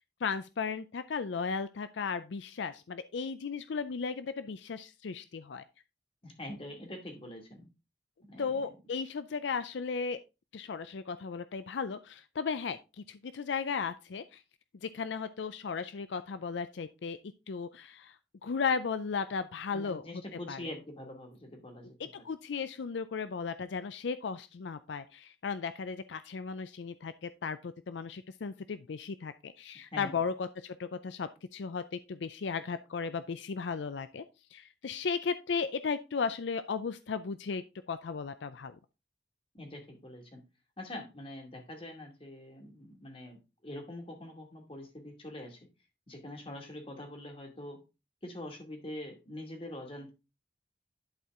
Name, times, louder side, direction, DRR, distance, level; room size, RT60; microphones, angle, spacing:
voice 1, 0.2-5.6 8.4-10.2 10.5-14.4 14.8-17.2 17.5-18.2 18.4-20.2 20.5-20.6 22.0-34.2 34.5-38.8, left 5 dB, 75° left, 12 dB, 0.5 m, -35 dB
voice 2, 6.2-7.7 8.3-8.6 19.7-21.9 29.9-30.2 39.5-40.4 40.8-45.6 46.1-47.8 48.2-50.1, left 1 dB, 30° left, 2 dB, 2.4 m, -44 dB
11.5 x 4.4 x 3.7 m, 0.28 s
head